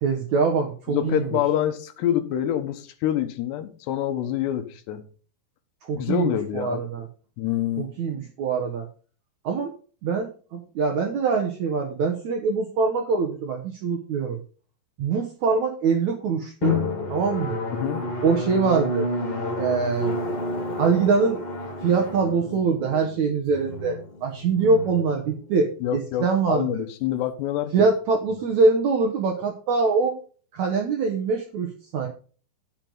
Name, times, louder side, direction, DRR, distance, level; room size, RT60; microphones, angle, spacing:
voice 1, 0.0-1.4 5.8-7.1 7.8-8.9 9.4-9.7 10.0-14.4 15.0-16.8 17.1-17.6 18.2-19.1 19.6-20.2 20.8-21.4 21.8-26.7 27.7-30.2 30.5-32.1, right 4 dB, 70° right, 1.8 m, -23 dB
voice 2, 0.9-5.1 5.9-6.8 7.4-7.9 17.7-18.0 25.8-27.9, left 11 dB, 85° left, 3.1 m, -26 dB
Drum, 16.6-25.9, left 2 dB, 45° left, 2.8 m, -30 dB
9.7 x 9.3 x 3.9 m
omnidirectional pair, 4.8 m